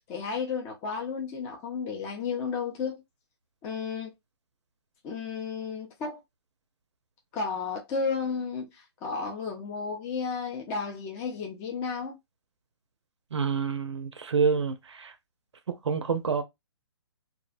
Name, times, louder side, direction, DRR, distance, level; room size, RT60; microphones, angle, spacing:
voice 1, 0.1-3.0 3.6-4.1 5.0-6.2 7.3-12.2, left 5 dB, 20° left, 0.4 m, -33 dB
voice 2, 13.3-15.1 15.9-16.4, right 5 dB, 90° right, 0.4 m, -27 dB
2.4 x 2.0 x 2.5 m
hypercardioid pair, 140°, 14 cm